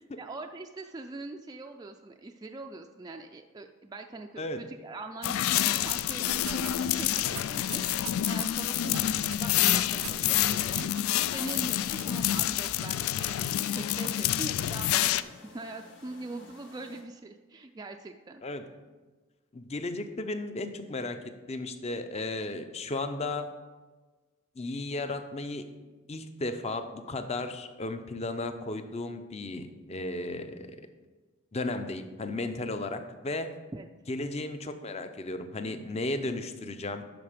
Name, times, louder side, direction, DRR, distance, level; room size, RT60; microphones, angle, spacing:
voice 1, 0.0-7.8 8.3-11.0 11.3-18.4 33.7-33.9, right 2 dB, 20° right, 4 dB, 0.3 m, -42 dB
sound 1, 5.2-15.2, left 12 dB, 85° left, 0.3 m, -28 dB
sound 2, 6.0-12.2, right 10 dB, 85° right, 0.6 m, -45 dB
sound 3, 9.5-17.0, left 2 dB, 60° left, 1.5 m, -51 dB
voice 2, 19.5-21.2 21.5-23.5 24.6-25.7 26.1-30.8 31.5-33.5 34.1-37.0, left 2 dB, 30° left, 8 dB, 0.6 m, -34 dB
11.0 x 4.4 x 5.0 m, 1.3 s
head